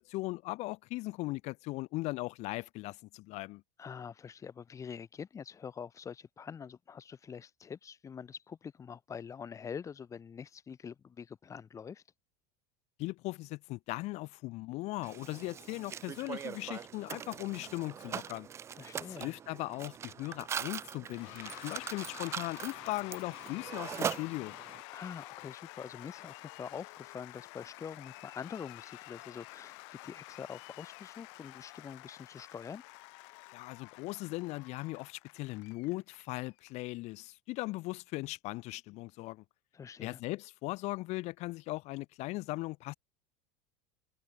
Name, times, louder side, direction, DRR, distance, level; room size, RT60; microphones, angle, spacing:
voice 1, 0.0-3.6 13.0-18.5 19.1-24.5 33.5-39.4 40.0-42.9, left 21 dB, 45° left, 0.7 m, -38 dB
voice 2, 3.8-12.0 18.7-19.3 24.9-29.8 30.0-32.8 39.7-40.2, left 7 dB, 20° left, 2.3 m, -45 dB
Mechanisms, 15.0-24.8, right 8 dB, 15° right, 0.3 m, -41 dB
Cheering / Applause / Crowd, 21.1-36.7, left 30 dB, 70° left, 2.3 m, -50 dB
cardioid pair, 160°, 16 cm